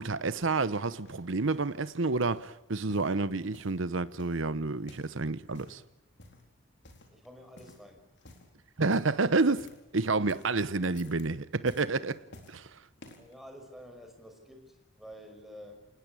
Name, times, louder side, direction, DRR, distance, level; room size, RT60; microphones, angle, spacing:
voice 1, 0.0-5.8 8.8-9.7 9.9-12.2 12.5-12.7, right 3 dB, 65° right, 0.9 m, -29 dB
sound 1, 1.0-1.8 2.2-2.5 2.9-3.8 4.2-5.2 5.4-5.8 6.2-6.5 6.8-7.3 7.6-7.9 8.2-8.5 8.9-9.9 10.2-10.6 10.9-11.3 11.6-12.6 13.0-13.3 14.0-14.1, left 2 dB, 60° left, 4.1 m, -53 dB
voice 2, 7.1-8.1 13.2-15.9, equal, ahead, 5.6 m, -50 dB
27.5 x 20.0 x 8.7 m
head